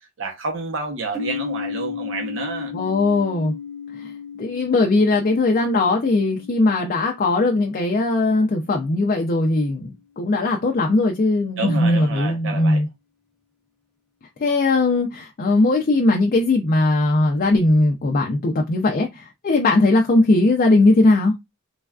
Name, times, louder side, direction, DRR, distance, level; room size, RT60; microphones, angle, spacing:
voice 1, 0.2-2.7 11.6-12.8, right 3 dB, 65° right, 0.7 m, -29 dB
sound 1, 1.1-8.9, left 6 dB, ahead, 0.6 m, -35 dB
voice 2, 2.7-3.5 3.9-4.1 4.4-12.9 14.4-21.3, left 2 dB, 45° left, 0.4 m, -19 dB
3.2 x 2.3 x 2.3 m
head